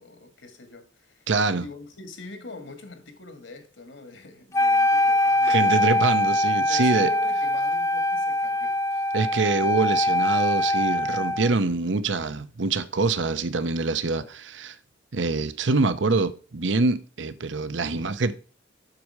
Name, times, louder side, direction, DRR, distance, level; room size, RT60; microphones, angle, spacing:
voice 1, 0.0-1.3 1.6-6.0 6.5-8.8, left 3 dB, 75° left, 1.9 m, -43 dB
voice 2, 1.3-1.7 5.4-7.1 9.1-14.8 15.1-18.3, right 3 dB, 70° right, 0.8 m, -25 dB
Wind instrument woodwind instrument, 4.5-11.5, left 1 dB, 15° left, 0.5 m, -23 dB
7.8 x 6.5 x 4.8 m
head